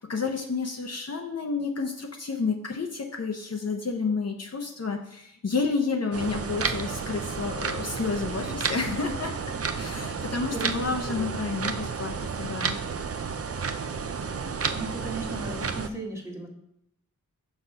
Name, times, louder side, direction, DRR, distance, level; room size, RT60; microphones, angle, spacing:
voice 1, 0.0-9.3 9.8-12.8, left 4 dB, 50° left, 3 dB, 0.7 m, -30 dB
sound 1, 6.1-15.9, right 5 dB, 45° right, 0.5 m, -31 dB
voice 2, 10.4-11.3 14.4-16.5, right 2 dB, 10° right, -1 dB, 1.4 m, -37 dB
6.1 x 3.9 x 5.5 m, 0.77 s
wide cardioid pair, 75°, 32 cm